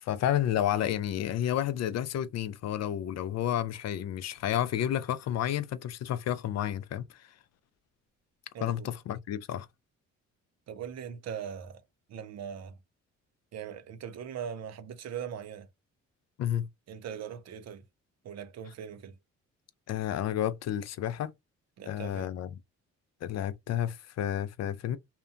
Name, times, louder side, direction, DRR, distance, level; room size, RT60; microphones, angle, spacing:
voice 1, 0.0-7.3 8.6-9.7 16.4-16.7 19.9-21.3 21.9-22.6 23.2-25.0, left 11 dB, 60° left, 0.4 m, -31 dB
voice 2, 8.5-8.9 10.7-11.8 12.1-12.8 13.5-15.7 16.9-17.8 18.2-19.2 21.8-22.3, right 8 dB, 60° right, 0.6 m, -40 dB
2.8 x 2.2 x 2.4 m
cardioid pair, 90°, 30 cm